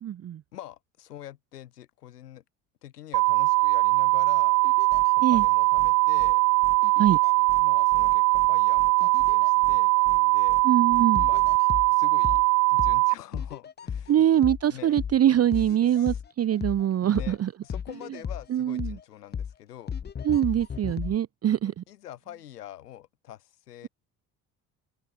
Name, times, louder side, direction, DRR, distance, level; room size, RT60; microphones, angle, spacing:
voice 1, 0.0-0.4 5.2-5.4 7.0-7.2 10.6-11.3 14.1-17.5 18.5-19.0 20.2-21.8, right 10 dB, 30° right, 0.7 m, -23 dB
voice 2, 0.5-2.4 2.8-4.6 5.1-6.4 7.6-10.6 11.2-11.4 11.9-12.4 12.7-14.4 14.7-15.0 16.0-16.2 17.0-17.4 17.6-19.9 21.6-23.9, left 12 dB, 90° left, 3.5 m, -44 dB
sound 1, 3.1-13.1, right 26 dB, 75° right, 1.0 m, -21 dB
sound 2, 3.4-3.7 4.6-5.9 6.8-7.8 8.1-8.2 9.0-9.5 10.0-10.1 11.1-12.4 12.8-13.0 13.3-14.7 15.0-15.2 15.5-16.9 17.1-17.4 17.7-19.0 19.3-19.5 19.9-21.2, left 7 dB, 20° left, 0.7 m, -35 dB
sound 3, 4.9-5.0 5.3-5.5 5.8-5.9 6.2-6.3 6.6-6.8 7.0-7.2 7.5-7.6 7.9-8.5 8.8-8.9 9.2-9.3 9.6-9.8 10.0-10.2 10.5-10.6 10.9-11.0 11.3-11.6, left 1 dB, 5° left, 4.4 m, -44 dB
open air
hypercardioid pair, 60°, 46 cm